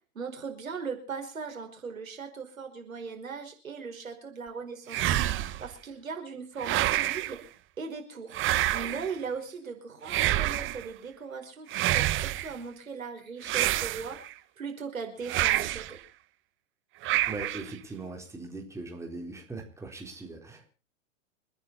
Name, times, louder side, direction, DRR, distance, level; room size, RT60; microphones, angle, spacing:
voice 1, 0.2-7.5 7.8-8.4 8.7-14.2 14.6-16.0, right 5 dB, 85° right, 4 dB, 5.2 m, -39 dB
sound 1, 4.9-5.7 6.6-7.4 8.3-9.1 10.1-10.9 11.7-12.5 13.4-14.3 15.3-15.9 17.0-17.7, right 15 dB, 30° right, 1.3 m, -28 dB
voice 2, 17.2-20.7, right 3 dB, 5° right, 2 dB, 4.0 m, -40 dB
29.0 x 10.0 x 4.1 m, 0.35 s
hypercardioid pair, 115°, 40 cm